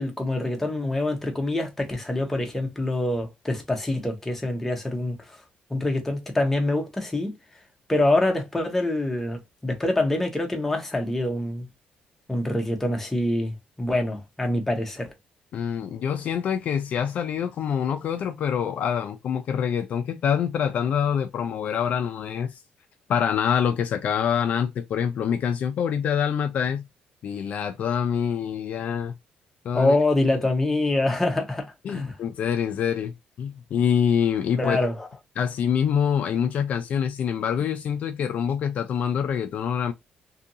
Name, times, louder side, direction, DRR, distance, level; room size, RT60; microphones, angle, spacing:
voice 1, 0.0-5.2 5.7-7.3 7.9-11.7 12.3-15.1 29.7-32.1 34.5-35.1, left 2 dB, 10° left, 0.8 m, -25 dB
voice 2, 15.5-22.5 23.1-26.8 27.2-29.1 29.6-29.9 31.8-33.1 33.4-34.8 35.4-39.9, left 8 dB, 55° left, 0.4 m, -25 dB
2.7 x 2.5 x 2.7 m
cardioid pair, 155°, 3 cm